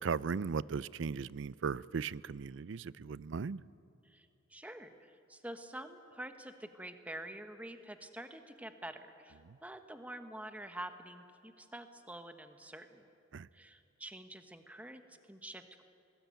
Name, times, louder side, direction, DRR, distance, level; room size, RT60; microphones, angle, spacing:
voice 1, 0.0-3.6 9.5-9.6 13.3-13.5, right 5 dB, 65° right, 20 dB, 0.4 m, -37 dB
voice 2, 4.0-13.0 13.5-15.8, right 1 dB, 5° right, 7 dB, 1.2 m, -47 dB
21.0 x 20.0 x 9.2 m, 2.8 s
head